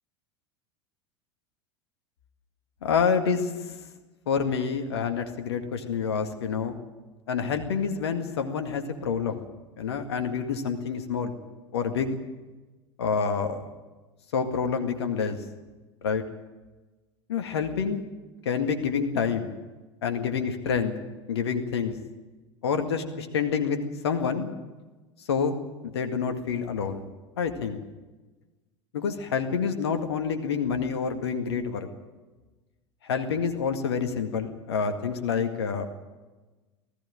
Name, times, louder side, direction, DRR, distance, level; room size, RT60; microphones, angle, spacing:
voice 1, 2.8-3.8 4.3-6.8 7.3-9.4 9.8-11.4 11.7-12.2 13.0-13.7 14.3-15.4 16.0-16.2 17.3-18.0 18.5-19.5 20.0-20.9 21.3-21.9 22.6-24.5 25.3-25.6 25.8-27.0 27.4-27.8 28.9-31.9 33.0-35.9, left 6 dB, 65° left, 6 dB, 1.9 m, -27 dB
19.5 x 15.0 x 9.0 m, 1.2 s
figure-of-eight pair, 80°, 15 cm